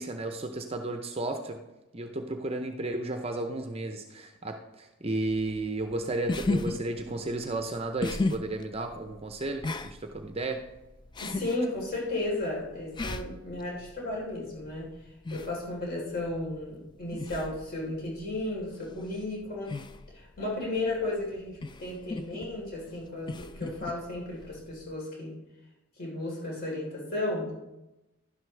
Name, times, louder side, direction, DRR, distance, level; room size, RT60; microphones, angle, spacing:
voice 1, 0.0-1.6 1.9-10.6, right 2 dB, 25° right, 5 dB, 0.6 m, -33 dB
sound 1, 5.3-24.9, left 3 dB, 20° left, 0.3 m, -37 dB
voice 2, 11.2-14.9 15.3-19.8 20.1-25.3 26.0-27.5, left 2 dB, 45° left, -4 dB, 3.7 m, -34 dB
11.5 x 11.0 x 3.3 m, 0.99 s
head